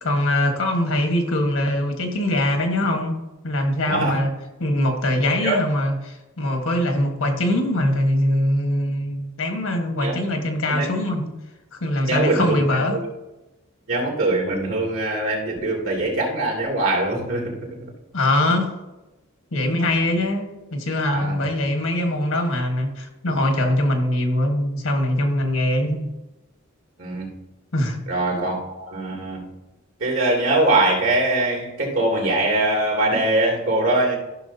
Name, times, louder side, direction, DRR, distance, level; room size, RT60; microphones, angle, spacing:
voice 1, 0.0-3.2 3.4-11.3 11.7-13.0 18.1-18.7 19.5-26.1 27.7-28.4, left 1 dB, 80° left, 4 dB, 1.4 m, -22 dB
voice 2, 3.8-4.2 5.4-5.6 10.0-10.2 10.7-10.9 12.1-13.1 13.9-17.9 21.1-21.4 27.0-27.3 28.1-29.5 30.0-34.2, right 2 dB, 75° right, -2 dB, 2.6 m, -22 dB
14.0 x 5.9 x 2.7 m, 1.0 s
head